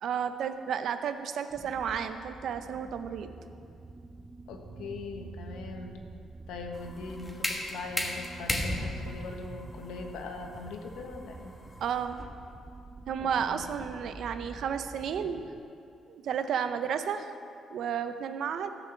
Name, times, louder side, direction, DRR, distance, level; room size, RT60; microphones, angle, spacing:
voice 1, 0.0-3.3 11.8-12.2 13.1-15.5 16.1-17.3 17.7-18.7, right 7 dB, 70° right, 10 dB, 0.6 m, -32 dB
sound 1, 1.5-15.6, right 3 dB, 25° right, 0.5 m, -47 dB
voice 2, 4.5-6.0 6.5-11.5 13.2-13.6, left 3 dB, 85° left, 3 dB, 1.2 m, -41 dB
sound 2, 6.7-12.5, left 1 dB, 15° left, 1.3 m, -35 dB
14.0 x 5.8 x 6.2 m, 2.5 s
cardioid pair, 90°, 0 cm